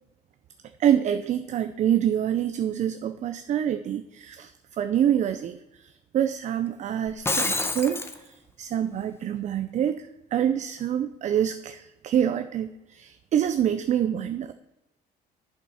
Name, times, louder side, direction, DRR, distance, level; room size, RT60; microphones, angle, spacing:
voice 1, 0.8-14.5, right 10 dB, 45° right, 10 dB, 0.5 m, -26 dB
Shatter, 7.1-8.2, left 2 dB, 15° left, 0.8 m, -27 dB
8.8 x 7.1 x 5.5 m, 1.0 s
cardioid pair, 110°, 17 cm